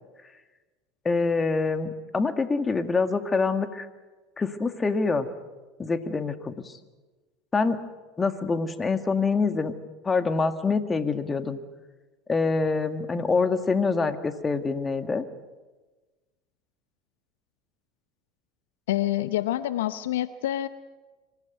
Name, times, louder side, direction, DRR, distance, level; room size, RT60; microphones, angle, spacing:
voice 1, 1.0-3.9 4.4-5.3 5.8-6.7 7.5-7.8 8.2-9.7 10.0-11.6 12.3-15.2, left 4 dB, 25° left, 9 dB, 1.9 m, -25 dB
voice 2, 18.9-20.7, left 13 dB, 80° left, 14 dB, 0.7 m, -27 dB
25.5 x 15.5 x 9.3 m, 1.2 s
hypercardioid pair, 80°, 0 cm